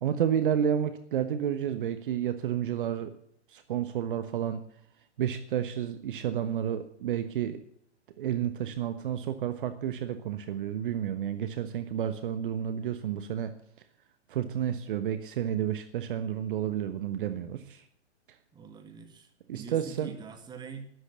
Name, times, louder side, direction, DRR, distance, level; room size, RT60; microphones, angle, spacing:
voice 1, 0.0-3.1 3.5-4.6 5.2-7.6 8.2-13.5 14.3-17.8 19.5-20.1, right 9 dB, 45° right, 10 dB, 1.2 m, -30 dB
voice 2, 18.5-20.9, right 6 dB, 10° right, 6 dB, 2.0 m, -44 dB
12.5 x 11.5 x 7.2 m, 0.68 s
figure-of-eight pair, 120°, 35 cm